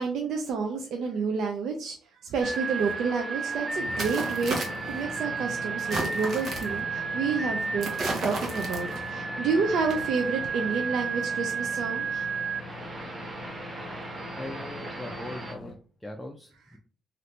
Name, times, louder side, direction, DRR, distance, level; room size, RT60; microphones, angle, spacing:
voice 1, 0.0-2.0 2.2-12.3, right 5 dB, 75° right, 3 dB, 0.4 m, -30 dB
sound 1, 2.4-15.5, right 4 dB, 30° right, 0.9 m, -33 dB
sound 2, 2.8-2.9 3.8-5.0 5.8-6.8 7.8-9.1 9.8-9.9, right 2 dB, 60° right, 1.0 m, -33 dB
sound 3, 3.8-15.8, left 3 dB, 55° left, 0.7 m, -43 dB
voice 2, 14.3-16.8, left 1 dB, 10° left, 2 dB, 0.4 m, -40 dB
2.8 x 2.5 x 3.2 m, 0.41 s
cardioid pair, 90°, 0 cm